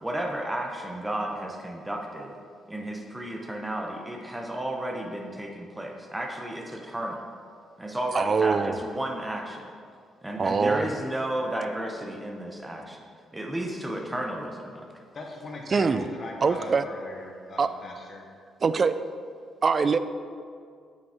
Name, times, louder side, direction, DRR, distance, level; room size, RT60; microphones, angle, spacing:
voice 1, 0.0-2.3 2.7-7.2 7.8-9.7 10.2-13.0 13.3-14.9, right 1 dB, 10° right, 1 dB, 0.8 m, -33 dB
voice 2, 8.1-8.8 10.4-10.9 15.7-16.1 16.4-16.8 17.6-17.7 18.6-18.9 19.6-20.0, right 5 dB, 40° right, 12 dB, 0.4 m, -23 dB
voice 3, 15.1-18.2, left 2 dB, 45° left, 1 dB, 1.1 m, -40 dB
8.2 x 5.2 x 4.3 m, 2.2 s
cardioid pair, 90°, 0 cm